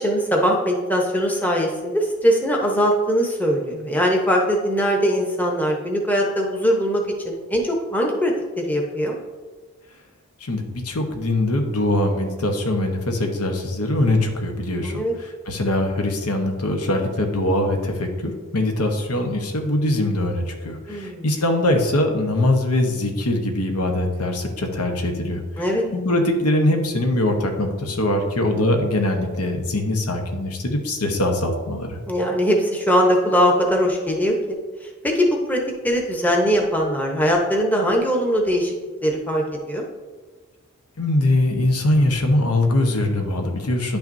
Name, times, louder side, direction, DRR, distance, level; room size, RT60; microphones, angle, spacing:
voice 1, 0.0-9.2 14.8-15.1 20.9-21.3 25.6-25.9 32.1-34.6 34.8-38.7 39.0-39.9, equal, 5° left, 0 dB, 0.8 m, -21 dB
voice 2, 10.4-32.0 41.0-44.0, left 1 dB, 85° left, 3 dB, 1.0 m, -22 dB
10.5 x 5.8 x 2.6 m, 1.4 s
head